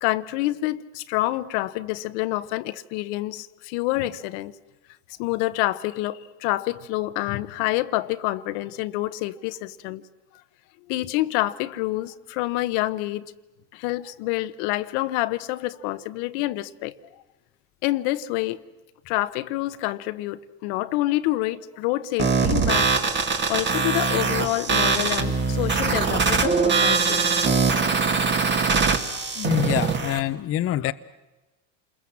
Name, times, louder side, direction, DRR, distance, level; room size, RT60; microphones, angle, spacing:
voice 1, 0.0-4.5 5.2-10.0 10.9-13.3 13.7-16.9 17.8-18.6 19.1-27.3 29.2-29.3 30.8-30.9, left 17 dB, 70° left, 1.1 m, -27 dB
sound 1, 22.2-30.2, right 5 dB, 30° right, 2.4 m, -22 dB
voice 2, 29.4-30.9, left 13 dB, 40° left, 0.8 m, -25 dB
28.5 x 21.5 x 7.3 m
supercardioid pair, 115°, 35 cm